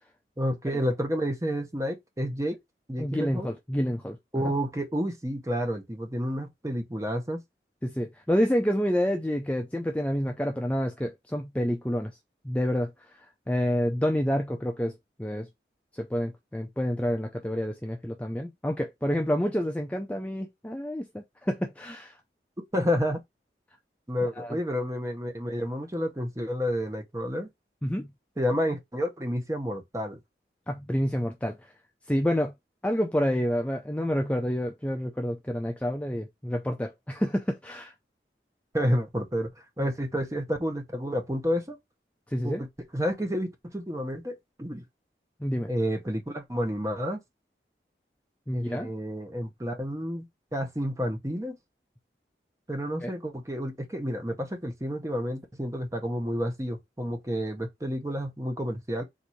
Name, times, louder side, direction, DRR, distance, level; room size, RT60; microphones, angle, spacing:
voice 1, 0.4-2.6 2.9-3.5 4.3-7.4 22.7-23.2 24.1-27.5 28.4-30.2 38.7-41.8 42.4-42.7 42.9-44.8 45.7-47.2 48.5-50.3 50.5-51.6 52.7-59.0, equal, 20° right, 0.8 m, -30 dB
voice 2, 3.0-4.2 7.8-12.1 12.4-12.9 13.5-14.9 15.2-15.5 15.9-22.2 24.4-24.6 27.8-28.1 30.7-31.7 32.1-32.5 32.8-37.9 39.8-39.9 42.3-42.6 45.4-45.7 48.5-48.9 53.0-53.1, equal, 10° left, 0.4 m, -28 dB
4.1 x 2.6 x 4.5 m
head